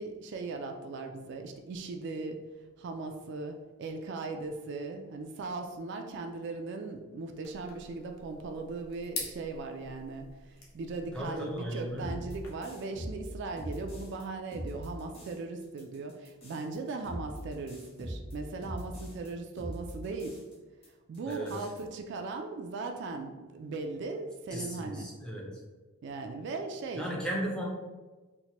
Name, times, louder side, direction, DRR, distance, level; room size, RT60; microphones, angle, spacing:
voice 1, 0.0-2.4 2.8-20.4 21.1-25.1 26.0-27.1, right 3 dB, 55° right, 5 dB, 0.3 m, -38 dB
sound 1, 7.4-12.5, left 3 dB, 85° left, 0.8 m, -45 dB
voice 2, 11.1-12.2 21.3-21.5 24.5-25.5 26.9-27.6, right 1 dB, 5° left, -3 dB, 0.5 m, -36 dB
sound 2, 12.0-14.2 14.5-15.3 15.6-19.3 19.6-20.5 20.8-20.9 21.1-21.8, equal, 30° left, 0.9 m, -41 dB
4.2 x 2.1 x 2.8 m, 1.3 s
head